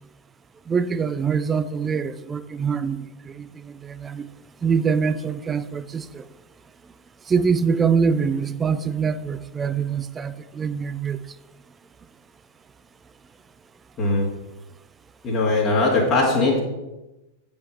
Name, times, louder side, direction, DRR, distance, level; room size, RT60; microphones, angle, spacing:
voice 1, 0.7-4.3 4.6-6.2 7.3-11.2, right 6 dB, 20° right, 0.4 m, -24 dB
voice 2, 15.2-16.6, left 2 dB, 35° left, 1.8 m, -20 dB
8.4 x 5.3 x 5.6 m
figure-of-eight pair, 90°, 0 cm